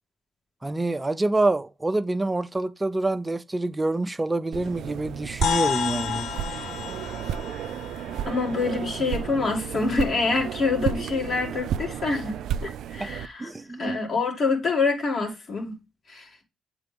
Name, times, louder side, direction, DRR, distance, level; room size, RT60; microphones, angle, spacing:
voice 1, 0.6-6.6 13.0-13.1 13.4-14.0, right 2 dB, 15° right, 0.6 m, -27 dB
sound 1, 4.5-13.3, right 9 dB, 75° right, 0.3 m, -32 dB
sound 2, 5.4-10.0, left 8 dB, 75° left, 0.7 m, -32 dB
voice 2, 8.3-13.5 13.8-15.8 16.1-16.4, left 4 dB, 50° left, 2.2 m, -26 dB
8.0 x 4.0 x 3.5 m
cardioid pair, 90°, 0 cm